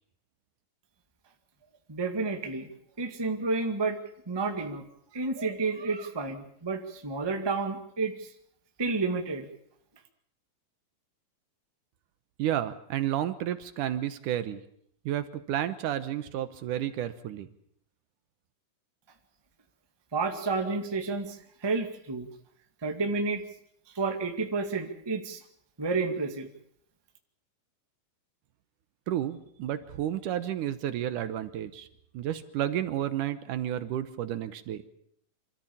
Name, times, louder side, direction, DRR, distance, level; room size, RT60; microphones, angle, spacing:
voice 1, 1.9-2.7 3.0-4.0 4.3-4.8 5.1-8.3 8.8-9.5 20.1-21.4 21.6-22.3 22.8-23.4 23.9-25.4 25.8-26.5, right 3 dB, 10° right, 4 dB, 1.2 m, -30 dB
voice 2, 12.4-14.6 15.1-17.5 29.1-31.9 32.1-34.8, right 11 dB, 75° right, 12 dB, 2.4 m, -31 dB
26.0 x 13.5 x 8.8 m, 0.68 s
omnidirectional pair, 3.9 m